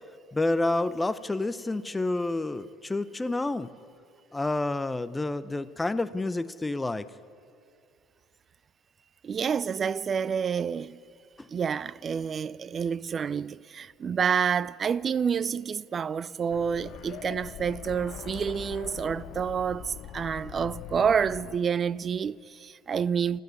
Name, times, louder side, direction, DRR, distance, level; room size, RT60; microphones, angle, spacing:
voice 1, 0.3-3.7 4.3-7.1 11.4-11.5, left 2 dB, 15° left, 0.8 m, -29 dB
voice 2, 9.2-11.0 11.5-23.4, right 7 dB, 35° right, 0.4 m, -28 dB
sound 1, 16.5-21.6, left 11 dB, 55° left, 0.9 m, -42 dB
29.5 x 12.0 x 9.7 m
figure-of-eight pair, 60°, 0 cm